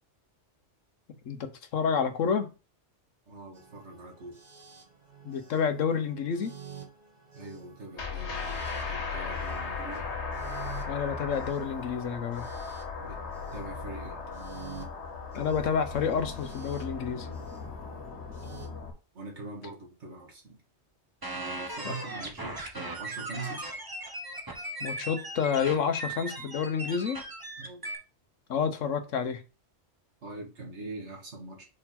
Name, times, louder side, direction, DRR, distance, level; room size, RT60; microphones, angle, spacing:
voice 1, 1.3-2.5 5.2-6.5 10.9-12.5 15.3-17.3 21.8-21.9 24.8-27.2 28.5-29.4, left 6 dB, 85° left, 1.2 m, -29 dB
voice 2, 3.3-4.4 7.3-10.1 13.0-13.2 13.5-14.2 17.6-17.8 18.5-18.8 19.1-20.6 21.3-23.7 27.6-27.9 30.2-31.7, right 2 dB, 65° right, 2.0 m, -43 dB
sound 1, 3.5-18.7, right 8 dB, 35° right, 1.3 m, -50 dB
sound 2, 8.0-18.9, left 5 dB, 65° left, 1.4 m, -37 dB
sound 3, 21.2-28.0, right 2 dB, 20° right, 1.0 m, -38 dB
5.0 x 4.5 x 4.2 m
omnidirectional pair, 1.3 m